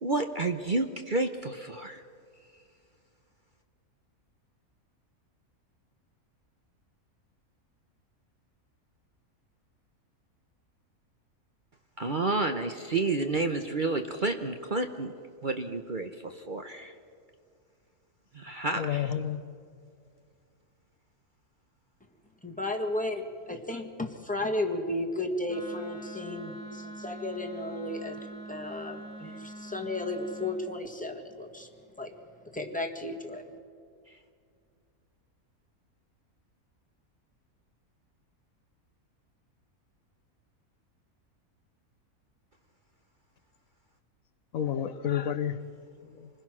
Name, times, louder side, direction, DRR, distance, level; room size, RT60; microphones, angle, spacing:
voice 1, 0.0-2.0 12.0-15.1 15.4-16.9 18.3-19.1 23.7-23.8, right 3 dB, 40° right, 6 dB, 0.9 m, -30 dB
voice 2, 18.7-19.4 44.5-45.6 46.0-46.3, left 9 dB, 70° left, 11 dB, 1.3 m, -30 dB
voice 3, 22.4-28.2 28.5-31.7 32.0-32.1 32.4-33.4, left 2 dB, 5° left, 3 dB, 1.6 m, -34 dB
Wind instrument woodwind instrument, 25.5-30.6, right 1 dB, 75° right, 5.2 m, -44 dB
27.0 x 20.5 x 6.1 m, 2.3 s
omnidirectional pair, 1.5 m